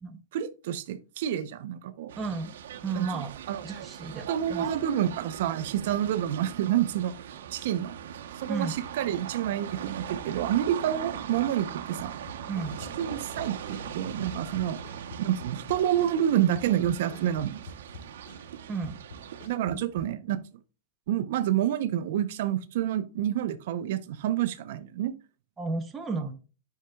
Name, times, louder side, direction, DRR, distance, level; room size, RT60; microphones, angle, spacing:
voice 1, 0.3-2.1 3.0-3.7 4.3-7.9 8.4-12.1 13.0-14.8 15.2-17.6 19.5-20.4 21.1-25.2, right 11 dB, 55° right, 0.7 m, -28 dB
sound 1, 2.1-19.5, right 9 dB, 75° right, 0.9 m, -40 dB
voice 2, 2.2-2.5 2.8-3.3 3.6-4.7 8.5-8.8 12.5-12.8 18.7-19.0 25.6-26.3, right 4 dB, 10° right, 0.7 m, -33 dB
sound 2, 11.1-14.0 14.3-18.6 18.8-20.1, left 2 dB, 50° left, 2.4 m, -48 dB
sound 3, 12.7-15.8, left 4 dB, 65° left, 4.0 m, -49 dB
8.0 x 5.7 x 2.3 m
supercardioid pair, 170°, 0 cm